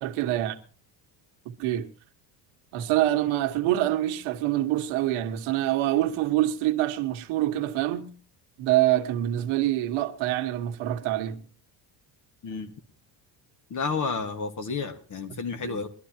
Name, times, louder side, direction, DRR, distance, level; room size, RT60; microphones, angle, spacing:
voice 1, 0.0-0.6 1.6-1.9 2.7-8.2 8.6-11.4 15.6-15.8, right 14 dB, 85° right, 1.5 m, -25 dB
voice 2, 13.7-15.9, left 4 dB, 40° left, 1.6 m, -31 dB
22.5 x 12.0 x 2.9 m
cardioid pair, 150°, 47 cm